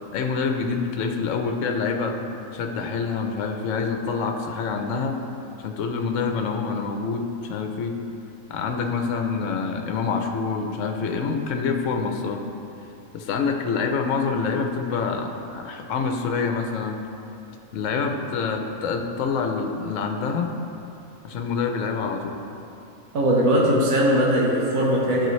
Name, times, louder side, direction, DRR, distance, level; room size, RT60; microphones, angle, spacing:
voice 1, 0.1-2.2 2.5-5.2 5.6-8.0 8.5-12.4 13.1-17.0 17.7-20.5 21.2-22.4, left 5 dB, 70° left, 4 dB, 1.0 m, -26 dB
voice 2, 23.1-25.3, equal, 80° right, -4 dB, 1.4 m, -20 dB
12.0 x 4.6 x 3.1 m, 2.8 s
omnidirectional pair, 1.4 m